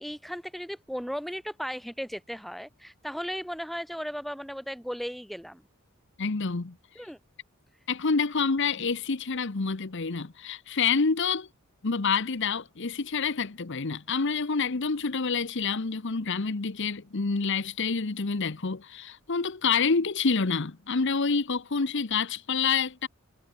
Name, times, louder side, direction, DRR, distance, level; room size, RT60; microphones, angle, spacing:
voice 1, 0.0-5.7 7.0-7.2, equal, ahead, 4.0 m, -36 dB
voice 2, 6.2-6.7 7.9-11.5 11.8-23.1, left 5 dB, 55° left, 0.9 m, -27 dB
head